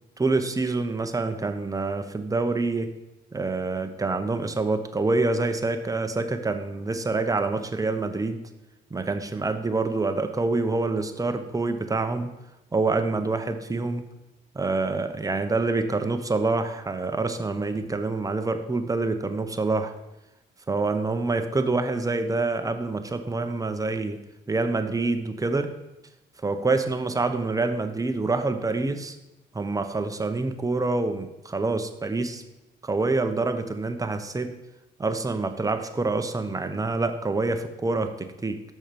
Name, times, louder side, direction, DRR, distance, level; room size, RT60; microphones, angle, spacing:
voice 1, 0.2-2.9 3.3-8.4 8.9-12.3 12.7-14.0 14.5-19.9 20.7-24.2 24.5-25.7 26.4-29.1 29.5-32.4 32.8-34.5 35.0-38.6, right 3 dB, 15° right, 7 dB, 0.9 m, -26 dB
6.3 x 5.7 x 6.9 m, 0.95 s
cardioid pair, 90°, 20 cm